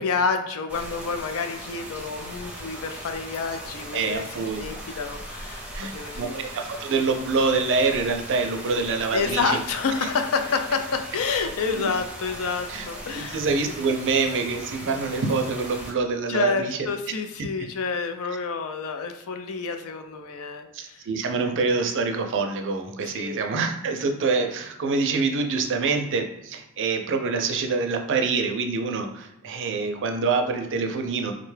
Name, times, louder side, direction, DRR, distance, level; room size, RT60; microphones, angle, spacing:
voice 1, 0.0-6.4 9.1-13.4 16.3-21.1 23.0-23.4, left 5 dB, 65° left, 7 dB, 0.4 m, -29 dB
sound 1, 0.7-15.9, right 1 dB, 5° right, 0.6 m, -39 dB
voice 2, 3.9-4.6 5.7-5.9 6.2-9.6 11.7-11.8 12.7-12.9 13.1-16.8 20.7-31.3, right 4 dB, 55° right, 5 dB, 0.5 m, -26 dB
3.7 x 2.2 x 3.2 m, 0.86 s
head